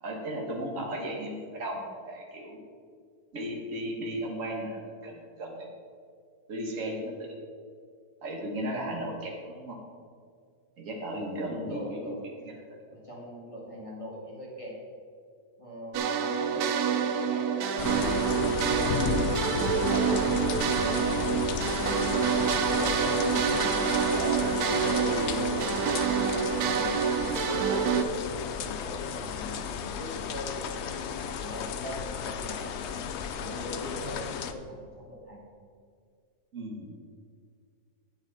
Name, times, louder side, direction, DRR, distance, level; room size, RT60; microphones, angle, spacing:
voice 1, 0.0-2.6 3.3-5.7 6.5-7.3 8.2-9.8 10.8-11.8 12.0-12.1 12.4-12.5 36.5-36.9, right 1 dB, 55° right, -1 dB, 1.9 m, -35 dB
voice 2, 8.8-9.1 11.4-12.2 12.9-14.7 15.6-19.1 19.3-20.3 20.7-22.2 22.7-24.4 24.8-25.8 26.2-33.0 33.4-35.4, equal, 20° left, -6 dB, 2.2 m, -41 dB
sound 1, 15.9-28.0, right 7 dB, 75° right, 1.1 m, -27 dB
sound 2, 17.8-34.5, left 7 dB, 65° left, 0.6 m, -33 dB
9.1 x 8.8 x 4.1 m, 2.1 s
omnidirectional pair, 1.7 m